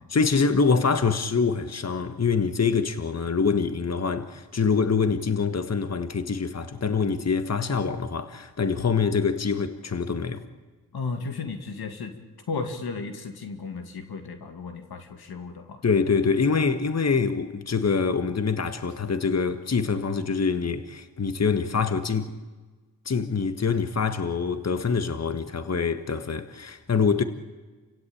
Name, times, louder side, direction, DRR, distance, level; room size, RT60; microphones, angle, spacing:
voice 1, 0.1-10.5 15.8-22.3 23.0-27.2, left 5 dB, 45° left, 1.6 m, -25 dB
voice 2, 10.9-12.2 12.5-15.8, left 4 dB, 85° left, 2.2 m, -34 dB
29.5 x 16.5 x 8.7 m
cardioid pair, 45°, 37 cm